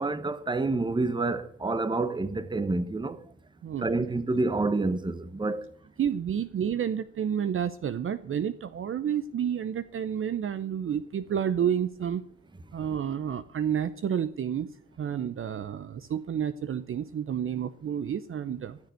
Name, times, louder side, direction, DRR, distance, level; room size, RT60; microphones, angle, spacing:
voice 1, 0.0-3.2 3.8-5.7, right 3 dB, 15° right, 1.0 m, -28 dB
voice 2, 3.6-4.1 6.0-12.2 12.7-18.8, right 8 dB, 45° right, 0.7 m, -30 dB
14.5 x 6.8 x 9.3 m
cardioid pair, 90°, 30 cm